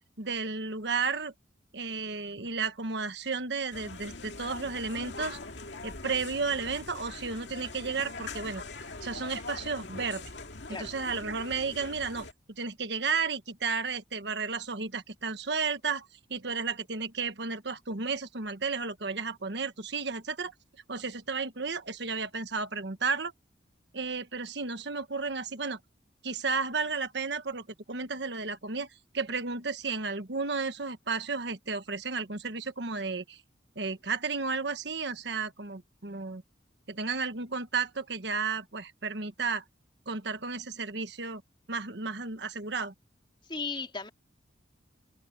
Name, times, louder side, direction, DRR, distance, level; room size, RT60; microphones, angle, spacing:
voice 1, 0.2-1.3 1.7-5.4 5.8-8.6 9.0-10.3 10.8-12.3 12.6-20.5 20.9-23.3 23.9-25.8 26.2-28.9 29.1-33.4 33.7-36.4 36.9-39.6 40.1-41.4 41.7-42.9, right 4 dB, 65° right, 1.3 m, -33 dB
sound 1, 3.7-12.3, left 3 dB, 70° left, 2.3 m, -42 dB
voice 2, 43.4-44.1, left 4 dB, 25° left, 2.7 m, -36 dB
head